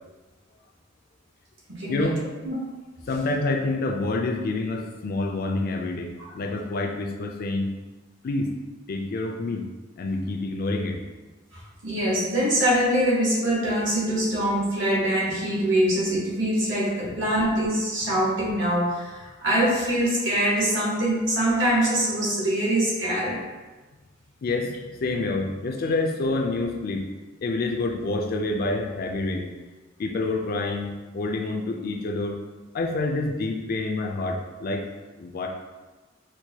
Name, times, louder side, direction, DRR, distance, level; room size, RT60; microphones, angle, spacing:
voice 1, 1.9-2.2 3.1-7.7 8.2-8.5 8.9-9.7 10.0-11.0 17.0-17.1 24.4-27.0 27.4-29.5 30.0-32.4 32.7-34.9 35.2-35.5, left 2 dB, 50° left, 2 dB, 0.4 m, -27 dB
voice 2, 11.5-23.4, right 1 dB, 65° right, -5 dB, 1.2 m, -24 dB
4.4 x 2.2 x 2.8 m, 1.2 s
head